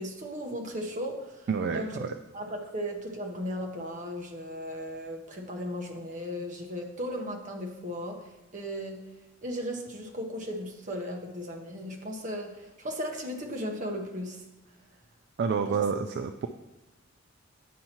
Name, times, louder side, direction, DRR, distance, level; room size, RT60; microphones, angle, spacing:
voice 1, 0.0-2.0 2.3-9.0 9.4-14.4 15.7-15.8, equal, 40° right, 2 dB, 0.9 m, -36 dB
voice 2, 1.5-2.1 15.4-16.5, right 6 dB, 55° right, 8 dB, 0.3 m, -29 dB
9.2 x 5.5 x 2.9 m, 1.0 s
head